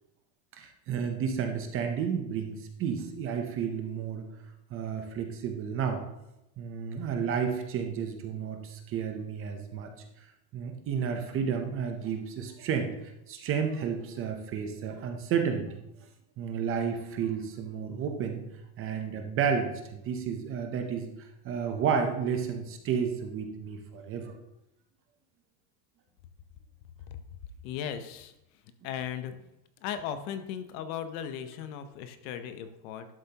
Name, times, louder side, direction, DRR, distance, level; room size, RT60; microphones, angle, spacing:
voice 1, 0.5-4.3 4.7-6.0 6.6-9.9 10.2-10.3 10.5-15.8 16.4-18.4 18.8-21.1 21.4-24.3, right 7 dB, 25° right, 5 dB, 0.7 m, -31 dB
voice 2, 27.6-28.3 28.8-29.3 29.8-33.1, left 9 dB, 60° left, 10 dB, 0.9 m, -37 dB
11.5 x 7.1 x 2.9 m, 0.89 s
cardioid pair, 175°, 48 cm